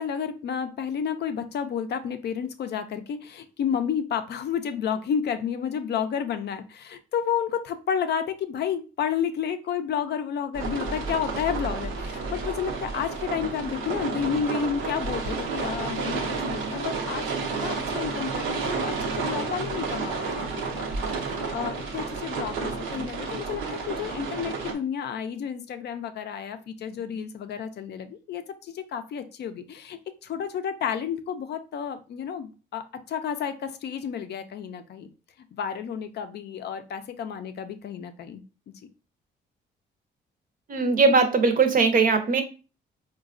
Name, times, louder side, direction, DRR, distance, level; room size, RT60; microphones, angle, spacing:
voice 1, 0.0-17.3 17.6-20.9 21.2-35.1 35.5-38.4, left 8 dB, 55° left, 9 dB, 0.4 m, -31 dB
sound 1, 10.5-24.7, right 4 dB, 85° right, 0.6 m, -31 dB
voice 2, 40.7-42.4, right 4 dB, 45° right, 8 dB, 0.6 m, -20 dB
4.0 x 2.2 x 2.4 m, 0.33 s
cardioid pair, 90°, 20 cm